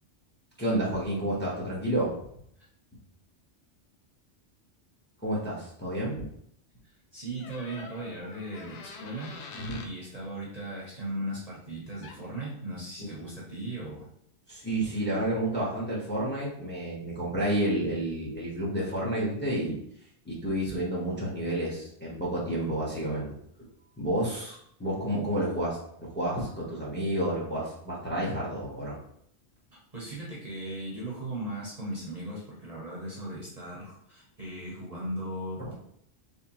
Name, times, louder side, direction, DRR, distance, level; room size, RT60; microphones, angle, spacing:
voice 1, 0.6-2.1 5.2-6.2 9.6-9.8 14.5-19.8 20.2-23.3 24.0-29.0, right 1 dB, 10° left, -5 dB, 1.0 m, -30 dB
voice 2, 6.8-9.4 9.8-14.1 29.9-35.7, right 1 dB, 35° right, -6 dB, 0.9 m, -37 dB
sound 1, 7.4-9.9 12.0-12.2, left 4 dB, 75° left, 0.9 m, -45 dB
3.5 x 3.1 x 3.0 m, 0.70 s
omnidirectional pair, 1.3 m